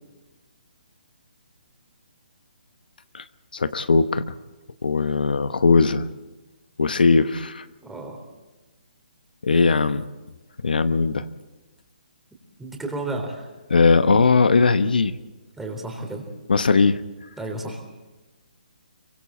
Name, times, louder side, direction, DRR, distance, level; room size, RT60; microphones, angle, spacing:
voice 1, 3.5-4.2 4.8-6.1 6.8-7.7 9.4-10.1 10.6-11.3 13.7-15.2 16.5-17.0, left 4 dB, 80° left, 12 dB, 1.0 m, -19 dB
voice 2, 7.8-8.2 12.6-13.5 15.6-16.2 17.4-17.8, right 2 dB, 5° right, 2 dB, 3.8 m, -32 dB
25.5 x 24.0 x 4.3 m, 1.2 s
hypercardioid pair, 150°, 5 cm